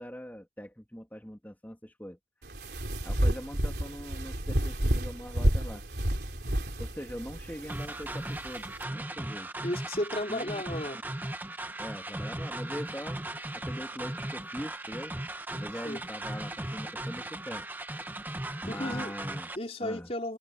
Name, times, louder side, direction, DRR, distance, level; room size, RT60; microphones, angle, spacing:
voice 1, 0.0-2.2 3.0-5.8 6.8-9.5 10.3-10.6 11.8-13.2 13.5-15.2 15.5-17.7 18.6-19.5 19.8-20.1, equal, 10° left, 3.1 m, -42 dB
sound 1, 2.4-8.8, equal, 70° right, 3.4 m, -30 dB
sound 2, 7.7-19.6, right 1 dB, 10° right, 1.1 m, -37 dB
voice 2, 9.6-11.0 15.8-16.0 18.7-19.1 19.6-20.4, left 1 dB, 35° left, 4.0 m, -34 dB
head